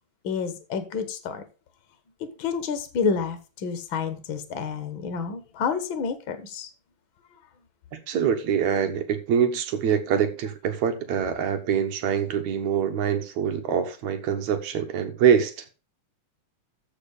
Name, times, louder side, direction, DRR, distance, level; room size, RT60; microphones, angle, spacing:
voice 1, 0.2-1.4 2.4-6.7, left 5 dB, 55° left, 1.6 m, -29 dB
voice 2, 7.9-15.6, right 8 dB, 70° right, 2.4 m, -24 dB
14.0 x 4.8 x 5.3 m
omnidirectional pair, 3.5 m